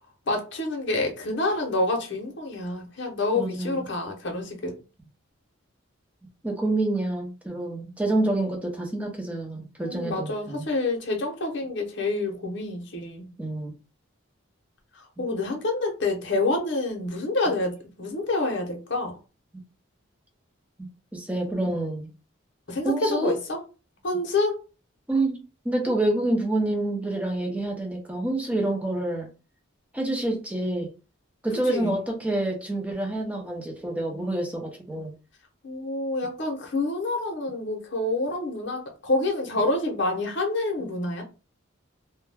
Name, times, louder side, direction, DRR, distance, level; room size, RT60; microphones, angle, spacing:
voice 1, 0.3-4.8 9.8-13.3 14.9-19.1 21.6-21.7 22.7-23.6 24.0-24.6 31.7-32.0 35.6-41.2, left 2 dB, 60° left, 0.7 m, -27 dB
voice 2, 3.3-3.8 6.4-10.7 13.4-13.7 21.1-22.1 22.8-23.3 25.1-25.4 25.6-29.3 29.9-30.9 31.4-35.1, right 2 dB, 5° right, 0.6 m, -27 dB
2.2 x 2.1 x 3.3 m
head